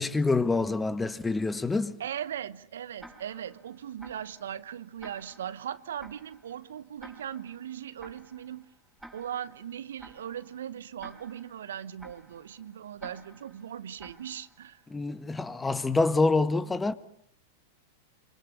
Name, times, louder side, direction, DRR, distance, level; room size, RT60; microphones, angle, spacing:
voice 1, 0.0-2.0 14.9-16.9, left 3 dB, 10° left, 1.6 m, -26 dB
voice 2, 2.0-8.7 9.1-14.8, right 9 dB, 70° right, 1.1 m, -39 dB
Tick-tock, 3.0-14.9, right 1 dB, 5° right, 4.8 m, -54 dB
26.5 x 26.0 x 7.0 m
hypercardioid pair, 95°, 0 cm